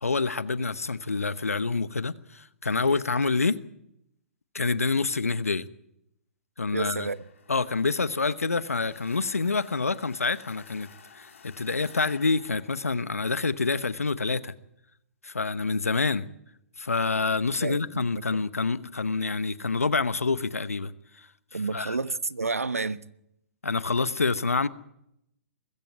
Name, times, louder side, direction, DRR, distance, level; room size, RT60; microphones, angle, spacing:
voice 1, 0.0-3.6 4.5-5.6 6.6-7.1 7.5-10.9 11.1-14.5 15.2-16.2 16.8-20.9 21.2-21.3 21.5-22.0 23.6-24.7, left 4 dB, 85° left, 1.1 m, -27 dB
voice 2, 6.7-7.2 17.6-18.0 21.5-23.0, right 3 dB, 90° right, 0.9 m, -30 dB
sound 1, 6.9-13.7, left 5 dB, 70° left, 4.1 m, -53 dB
21.0 x 16.0 x 9.4 m
figure-of-eight pair, 125°, 8 cm